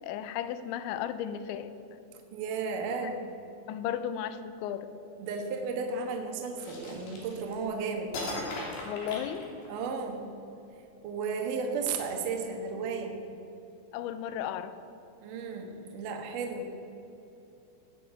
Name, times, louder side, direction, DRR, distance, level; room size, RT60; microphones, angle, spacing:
voice 1, 0.0-1.8 3.7-4.9 8.9-9.5 13.9-14.8, left 9 dB, 80° left, 12 dB, 2.7 m, -34 dB
voice 2, 2.3-3.2 5.2-8.1 9.7-10.3 11.0-13.2 15.2-16.7, right 4 dB, 80° right, 3 dB, 1.9 m, -34 dB
sound 1, 6.6-7.7 8.1-10.0, left 2 dB, 60° left, 5.0 m, -38 dB
19.0 x 8.6 x 7.6 m, 2.9 s
omnidirectional pair, 6.0 m